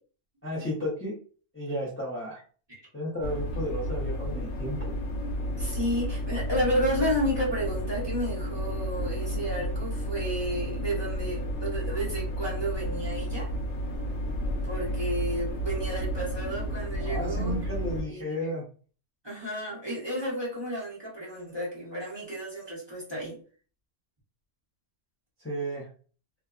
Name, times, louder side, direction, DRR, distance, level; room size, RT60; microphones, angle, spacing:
voice 1, 0.4-1.2 1.5-2.4 2.9-4.9 17.0-18.7 25.4-25.9, equal, 15° left, -6 dB, 0.5 m, -33 dB
sound 1, 3.2-18.0, equal, 85° left, 1.0 m, -32 dB
voice 2, 5.6-13.5 14.6-17.5 17.9-18.5 19.2-23.4, equal, 25° right, -6 dB, 0.8 m, -32 dB
2.6 x 2.1 x 2.3 m, 0.40 s
omnidirectional pair, 1.3 m